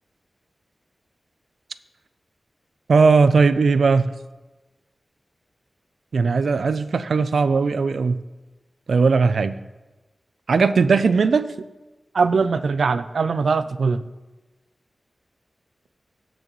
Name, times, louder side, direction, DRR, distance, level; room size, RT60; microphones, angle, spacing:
voice 1, 2.9-4.1 6.1-8.2 8.9-9.6 10.5-11.5 12.1-14.0, right 4 dB, 85° right, 13 dB, 0.4 m, -18 dB
17.0 x 6.2 x 3.0 m, 1.1 s
cardioid pair, 40°, 0 cm